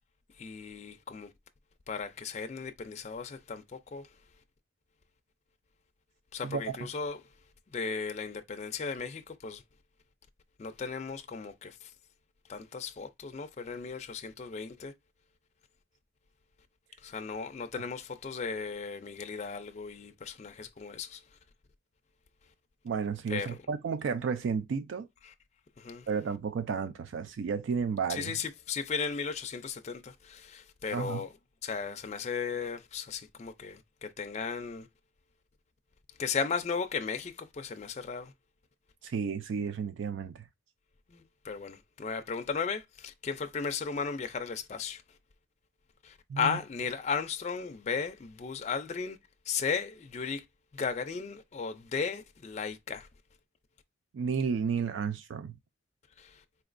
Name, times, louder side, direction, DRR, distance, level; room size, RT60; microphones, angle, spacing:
voice 1, 0.4-1.3 1.9-4.1 6.3-7.2 7.7-9.6 10.6-11.9 12.5-14.9 17.0-21.2 23.3-23.6 25.2-25.3 25.8-26.1 28.1-31.3 31.6-34.9 36.2-38.3 41.1-45.0 46.0-49.2 49.5-50.4 50.7-53.1 56.2-56.4, left 5 dB, 35° left, 0.4 m, -36 dB
voice 2, 22.8-25.1 26.1-28.3 30.9-31.2 39.0-40.5 46.3-46.6 54.1-55.5, right 6 dB, 70° right, 0.3 m, -32 dB
4.3 x 3.0 x 2.5 m
head